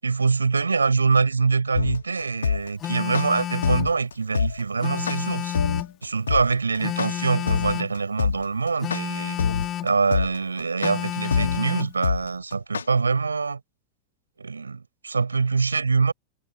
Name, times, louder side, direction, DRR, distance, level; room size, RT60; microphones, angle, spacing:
voice 1, 0.0-5.6 6.0-9.4 9.8-13.6 14.4-16.1, right 4 dB, 75° right, 7.3 m, -24 dB
sound 1, 1.7-12.8, left 6 dB, 70° left, 1.9 m, -25 dB
Telephone, 2.8-3.9 4.8-6.0 6.8-8.0 8.8-9.9 10.8-11.9, left 12 dB, 30° left, 2.9 m, -31 dB
figure-of-eight pair, 90°, 0 cm